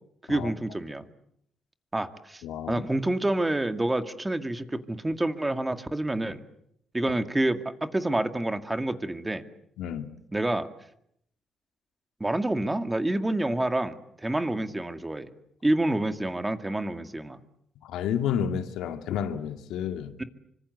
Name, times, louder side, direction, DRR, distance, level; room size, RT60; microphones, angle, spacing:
voice 1, 0.3-1.1 1.9-6.4 6.9-9.4 10.3-10.7 12.2-15.3 15.6-17.4 20.2-20.3, right 1 dB, 15° right, 2.1 m, -28 dB
voice 2, 2.4-2.9 9.8-10.1 17.8-20.1, left 8 dB, 85° left, 2.3 m, -30 dB
25.5 x 25.0 x 8.1 m
cardioid pair, 90°, 0 cm